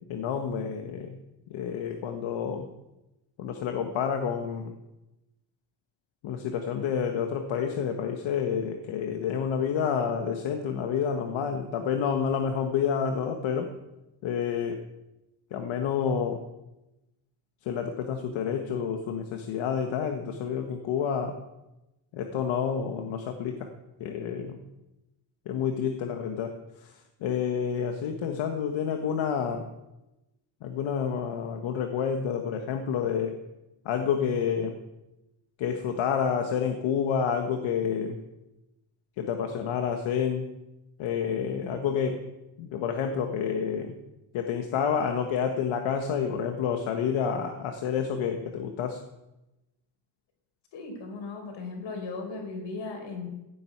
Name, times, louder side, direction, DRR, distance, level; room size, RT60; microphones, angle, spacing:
voice 1, 0.1-1.2 1.5-2.7 3.4-4.7 6.2-13.7 14.2-14.8 15.5-16.4 17.6-21.4 22.1-23.7 24.0-24.6 25.4-26.9 27.2-29.7 30.6-33.4 33.8-34.7 35.6-38.2 39.2-40.5 41.0-42.2 42.6-43.9 44.3-49.0, left 7 dB, 90° left, 5 dB, 1.6 m, -29 dB
voice 2, 50.7-53.3, left 3 dB, 70° left, 4 dB, 5.2 m, -37 dB
16.0 x 8.0 x 9.3 m, 0.97 s
cardioid pair, 130°, 45 cm